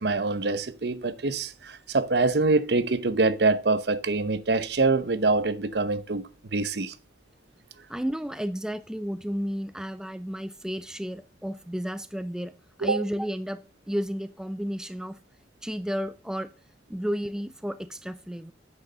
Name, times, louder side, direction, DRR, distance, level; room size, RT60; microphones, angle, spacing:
voice 1, 0.0-6.9 12.8-13.0, right 3 dB, 65° right, 0.8 m, -25 dB
voice 2, 7.9-12.5 12.8-13.6 13.9-15.2 15.6-16.5 16.9-18.5, equal, 5° right, 0.4 m, -32 dB
8.2 x 6.4 x 6.6 m
head